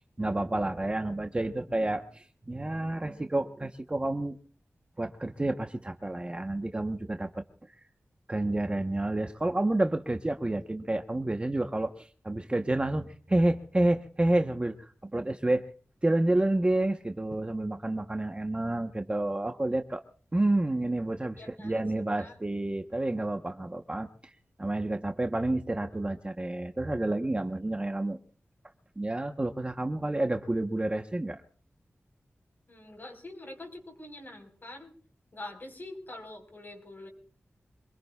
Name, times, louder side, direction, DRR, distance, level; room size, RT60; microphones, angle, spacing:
voice 1, 0.2-4.4 5.0-7.4 8.3-14.7 15.0-15.7 16.0-20.0 20.3-24.1 24.6-28.2 29.0-31.4, right 2 dB, 25° right, 6 dB, 1.0 m, -29 dB
voice 2, 21.4-21.8 22.2-22.4 32.7-34.9 35.3-37.1, left 2 dB, 45° left, 4 dB, 4.6 m, -45 dB
25.5 x 21.0 x 2.4 m, 0.43 s
wide cardioid pair, 100°, 5 cm